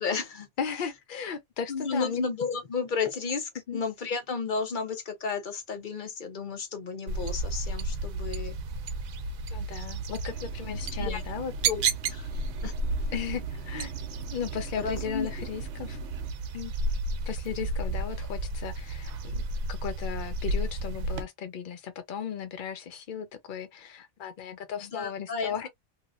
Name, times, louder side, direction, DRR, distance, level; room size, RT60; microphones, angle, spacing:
voice 1, 0.0-0.5 1.7-8.6 11.0-11.2 11.6-12.3 12.6-12.7 14.8-15.3 24.8-25.7, left 5 dB, 40° left, 0.8 m, -33 dB
voice 2, 0.6-2.2 3.7-3.8 9.5-11.5 13.1-13.9 14.3-16.0 16.5-16.7 17.3-19.4 19.7-25.7, left 7 dB, 70° left, 0.4 m, -36 dB
sound 1, 7.1-21.2, right 2 dB, 80° right, 1.1 m, -32 dB
sound 2, 10.3-16.3, right 9 dB, 65° right, 0.7 m, -48 dB
3.1 x 2.7 x 2.3 m
omnidirectional pair, 1.5 m